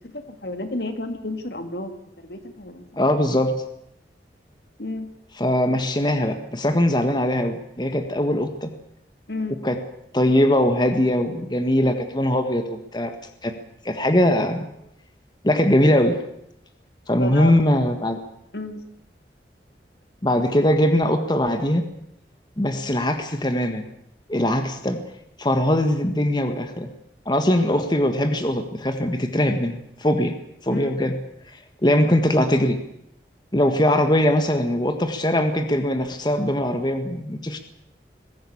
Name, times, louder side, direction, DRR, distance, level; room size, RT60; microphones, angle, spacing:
voice 1, 0.0-3.0 4.8-5.1 9.3-9.6 17.2-17.6 18.5-18.8 30.7-30.9, left 2 dB, 65° left, 7 dB, 2.2 m, -32 dB
voice 2, 3.0-3.5 5.4-8.7 9.6-9.8 10.1-13.1 13.4-13.5 13.8-14.7 15.4-16.2 17.1-18.2 20.2-21.8 22.6-23.9 24.3-25.0 25.4-26.9 27.2-30.3 30.6-31.2 31.8-32.8 33.5-37.6, left 1 dB, 25° left, 7 dB, 1.6 m, -21 dB
21.5 x 16.0 x 8.7 m, 0.77 s
head